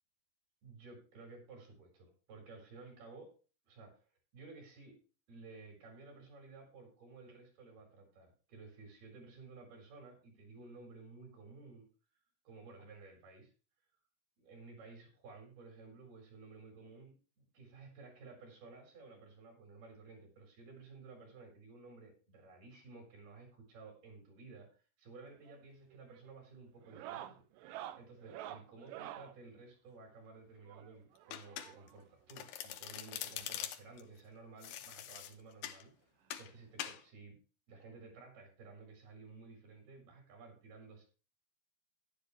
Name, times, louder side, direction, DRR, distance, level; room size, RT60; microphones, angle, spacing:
voice 1, 0.6-3.3 3.6-5.0 5.3-11.9 12.4-13.5 14.4-24.7 25.0-27.7 28.0-35.9 36.4-37.4 37.7-41.0, right 3 dB, 65° right, 2 dB, 6.1 m, -54 dB
sound 1, 25.3-25.6 25.9-26.3 26.8-29.3 30.7-32.0 33.1-33.2 33.4-33.5 34.0-34.1 35.4-35.5 36.8-36.9, right 12 dB, 85° right, 1.9 m, -49 dB
Domestic sounds home sounds, 31.3-32.0 32.3-34.0 34.6-35.8 36.3-36.5 36.8-37.0, left 11 dB, 85° left, 2.9 m, -43 dB
12.0 x 11.0 x 3.2 m, 0.35 s
omnidirectional pair, 4.8 m